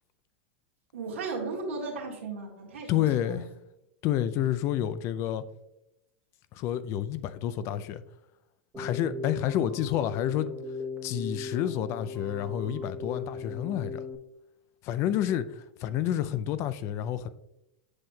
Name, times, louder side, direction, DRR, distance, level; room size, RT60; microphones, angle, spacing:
voice 1, 0.9-3.4, right 4 dB, 85° right, 1.8 m, -36 dB
voice 2, 2.9-3.5 4.0-5.4 6.5-8.0 8.8-10.5 11.0-14.0 14.8-17.3, left 11 dB, 45° left, 0.4 m, -29 dB
Keyboard (musical), 8.7-14.2, left 4 dB, 15° right, 1.0 m, -38 dB
7.9 x 5.6 x 2.3 m
hypercardioid pair, 115°, 7 cm